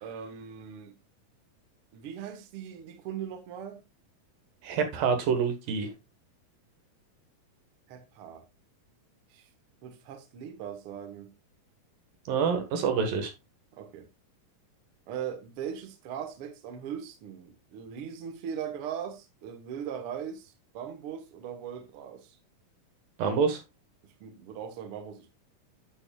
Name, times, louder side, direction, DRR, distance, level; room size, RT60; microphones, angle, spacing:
voice 1, 0.0-0.9 1.9-3.8 7.9-8.5 9.3-9.5 9.8-11.3 13.7-14.1 15.1-22.4 24.0-25.3, right 8 dB, 60° right, 1.5 m, -39 dB
voice 2, 4.6-5.9 12.3-13.3 23.2-23.6, right 6 dB, 80° right, 3.1 m, -27 dB
9.7 x 7.0 x 2.3 m
omnidirectional pair, 3.9 m